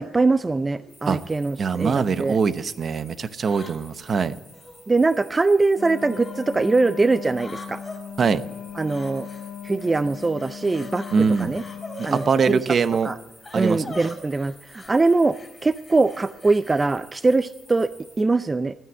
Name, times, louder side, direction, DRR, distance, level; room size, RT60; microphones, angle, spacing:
voice 1, 0.0-2.4 4.9-7.8 8.8-9.3 9.6-11.6 12.0-12.8 13.0-13.2 13.5-15.4 15.6-17.9 18.2-18.8, right 3 dB, 25° right, 14 dB, 0.5 m, -22 dB
sound 1, 0.8-1.1 1.8-2.4 3.4-4.8 5.8-6.4 7.3-8.0 8.9-9.5 9.8-12.3 12.7-12.9 13.4-16.9, left 2 dB, 25° left, 4.3 m, -43 dB
sound 2, 0.9-18.2, left 1 dB, ahead, 3.6 m, -52 dB
voice 2, 1.6-4.3 8.2-8.4 11.1-11.5 12.0-13.1 13.5-13.8, right 5 dB, 50° right, 14 dB, 0.9 m, -22 dB
Wind instrument woodwind instrument, 5.7-12.4, left 8 dB, 55° left, 0.8 m, -38 dB
12.5 x 9.7 x 9.9 m, 1.1 s
cardioid pair, 90°, 0 cm